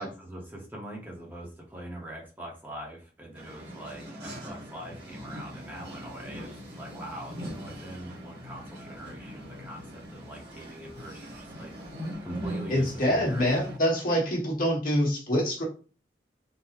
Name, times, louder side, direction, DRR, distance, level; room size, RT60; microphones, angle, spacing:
voice 1, 0.0-11.7 12.2-13.6, right 1 dB, 10° right, -2 dB, 0.7 m, -43 dB
sound 1, 3.3-13.8, equal, 70° right, 1.2 m, -41 dB
voice 2, 12.7-15.6, equal, 55° left, -2 dB, 1.3 m, -25 dB
3.7 x 2.0 x 2.9 m, 0.36 s
head